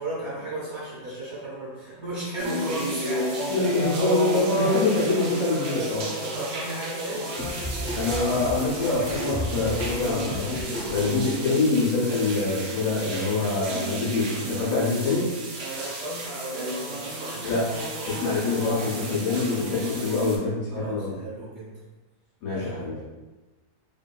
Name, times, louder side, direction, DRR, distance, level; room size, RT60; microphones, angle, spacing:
voice 1, 0.0-4.1 6.2-7.2 15.5-17.6 20.7-21.7 22.5-23.0, right 1 dB, 50° right, -9 dB, 1.1 m, -35 dB
sound 1, 2.4-20.4, right 1 dB, 75° right, 0.6 m, -32 dB
voice 2, 3.5-6.1 8.0-10.5 10.9-15.4 17.4-17.7 18.0-21.2 22.4-22.9, left 3 dB, 65° left, -5 dB, 1.0 m, -25 dB
sound 2, 7.4-11.2, left 1 dB, 5° right, 0.6 m, -33 dB
2.8 x 2.5 x 2.2 m, 1.2 s
omnidirectional pair, 1.7 m